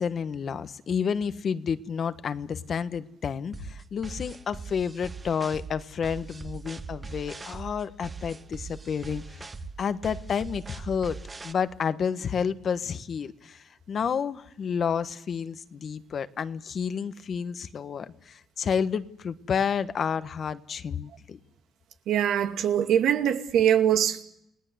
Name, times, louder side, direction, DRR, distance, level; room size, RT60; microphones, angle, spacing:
voice 1, 0.0-9.2 9.8-11.2 11.4-21.4, left 7 dB, 55° left, 1.3 m, -30 dB
sound 1, 3.5-11.5, right 4 dB, 30° right, 1.6 m, -41 dB
voice 2, 22.1-24.2, right 9 dB, 85° right, 2.3 m, -23 dB
29.5 x 18.5 x 8.1 m
cardioid pair, 90°, 0 cm